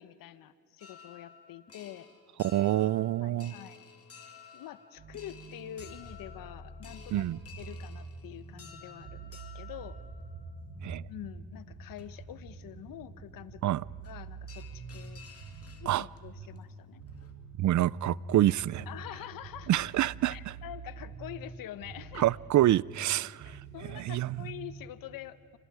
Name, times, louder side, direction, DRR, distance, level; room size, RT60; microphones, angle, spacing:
voice 1, 0.0-2.1 3.2-3.8 4.5-7.3 7.6-10.0 11.1-13.8 14.1-15.2 15.8-17.0 18.9-19.7 20.3-22.3 23.4-25.6, left 12 dB, 75° left, 0.9 m, -46 dB
sound 1, 0.8-10.8 11.5-11.6 12.0-12.1 14.0-14.2 14.5-16.2 16.5-16.6 17.0-17.3, left 7 dB, 45° left, 2.6 m, -53 dB
voice 2, 2.4-3.5 7.1-7.4 10.8-11.0 13.6-13.8 15.9-16.1 17.6-18.9 19.7-20.5 22.2-23.6 23.9-24.4, right 14 dB, 60° right, 0.5 m, -27 dB
sound 2, 5.0-24.9, right 3 dB, 85° right, 7.3 m, -46 dB
29.0 x 25.5 x 4.8 m
cardioid pair, 75°, 34 cm